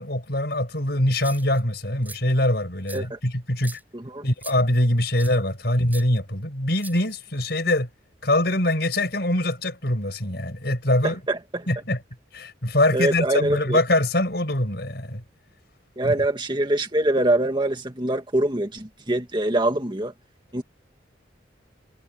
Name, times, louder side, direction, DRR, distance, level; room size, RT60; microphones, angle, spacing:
voice 1, 0.0-3.8 4.2-7.9 8.2-11.2 11.7-12.0 12.3-15.2 16.0-16.2, left 1 dB, 60° left, 5.8 m, -23 dB
sound 1, 1.1-1.6 2.0-2.2 2.9-3.0 3.6-3.8 4.4-4.6 5.2-5.4 5.9-6.0 6.8-7.4, right 3 dB, 10° right, 6.4 m, -41 dB
voice 2, 3.9-4.3 11.0-11.7 12.9-13.8 16.0-20.1 20.5-20.6, right 1 dB, 25° right, 2.2 m, -24 dB
head